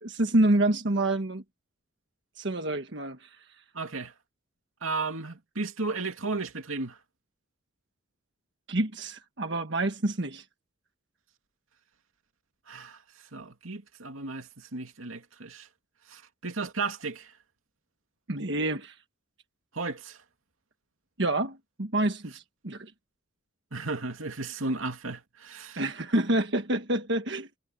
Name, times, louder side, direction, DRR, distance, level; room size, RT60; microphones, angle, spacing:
voice 1, 0.0-1.4 2.4-3.4 8.7-10.4 18.3-19.0 21.2-22.9 25.8-27.5, right 1 dB, 55° right, 1.5 m, -27 dB
voice 2, 3.7-4.1 4.8-7.0 12.7-13.0 13.3-15.7 16.1-17.3 19.7-20.2 23.7-25.8, right 3 dB, 80° right, 2.6 m, -34 dB
head